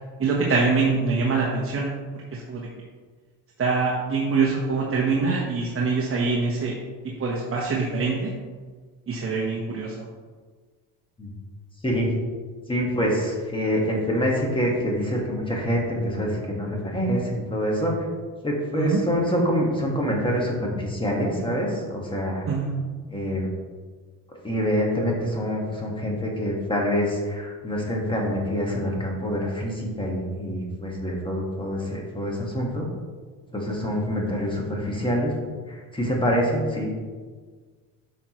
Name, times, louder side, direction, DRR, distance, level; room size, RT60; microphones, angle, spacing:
voice 1, 0.2-1.9 2.3-2.7 3.6-6.8 7.2-8.3 9.1-9.9 18.7-19.0 22.5-22.7, right 4 dB, 35° right, -3 dB, 1.1 m, -24 dB
voice 2, 12.7-17.9 18.4-22.4 23.1-23.5 24.4-32.8 33.5-35.3 35.9-36.9, equal, 15° left, -1 dB, 1.7 m, -26 dB
9.1 x 5.9 x 3.1 m, 1.5 s
cardioid pair, 130°, 39 cm